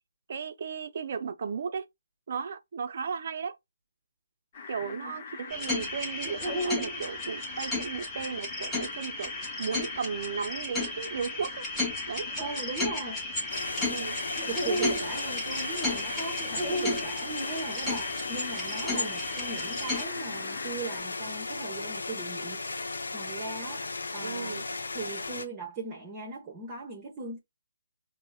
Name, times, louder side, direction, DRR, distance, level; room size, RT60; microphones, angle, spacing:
voice 1, 0.3-1.9 2.3-3.6 4.7-11.7 12.1-12.3 13.9-14.2 18.8-19.1 24.2-24.7, right 6 dB, 50° right, 0.5 m, -35 dB
sound 1, 4.5-21.0, left 5 dB, 35° left, 0.8 m, -43 dB
voice 2, 4.8-5.1 12.4-13.3 13.8-14.1 14.5-22.6 23.1-23.9 24.1-24.6 24.9-27.4, right 3 dB, 20° right, 0.8 m, -39 dB
sound 2, 5.5-20.0, left 1 dB, 10° left, 0.9 m, -33 dB
sound 3, 13.5-25.5, left 3 dB, 75° left, 0.6 m, -36 dB
5.2 x 2.0 x 2.3 m
figure-of-eight pair, 150°, 0 cm